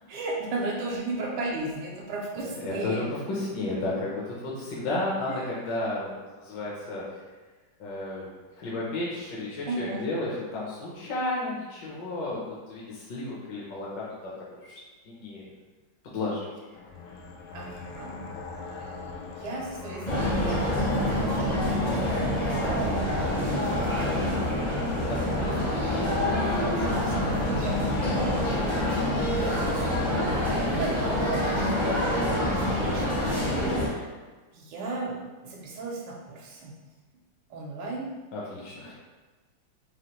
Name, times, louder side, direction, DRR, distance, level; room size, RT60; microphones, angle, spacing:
voice 1, 0.1-3.1 5.3-5.4 9.7-10.1 17.5-18.3 18.6-19.0 19.3-23.5 23.9-24.6 24.8-33.2 33.6-34.2 34.5-36.7 37.5-38.1, right 2 dB, 85° right, -2 dB, 1.5 m, -36 dB
voice 2, 2.6-7.0 7.8-14.3 14.6-14.8 15.0-15.5 16.0-16.5 25.1-25.7 28.5-28.9 38.3-38.9, left 2 dB, 65° left, -5 dB, 1.3 m, -33 dB
sound 1, 16.7-30.3, left 4 dB, 80° left, 1.4 m, -41 dB
sound 2, 20.1-33.9, left 1 dB, 30° left, 0.6 m, -26 dB
5.0 x 2.7 x 3.0 m, 1.3 s
omnidirectional pair, 2.3 m